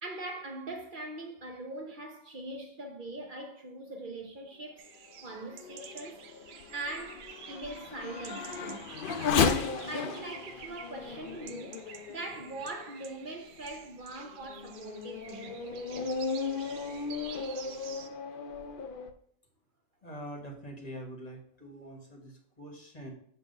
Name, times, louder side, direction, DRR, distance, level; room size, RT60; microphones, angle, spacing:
voice 1, 0.0-4.9 5.2-6.2 6.7-8.9 9.7-15.7, right 2 dB, 45° right, 0.7 m, -42 dB
sound 1, 4.8-18.1, right 8 dB, 90° right, 1.1 m, -50 dB
Race car auto racing / Accelerating revving vroom, 5.1-13.0 13.6-13.7 14.3-19.1, left 5 dB, 65° left, 0.5 m, -35 dB
voice 2, 20.0-23.1, equal, 30° left, 1.3 m, -44 dB
7.8 x 3.2 x 5.3 m
omnidirectional pair, 1.5 m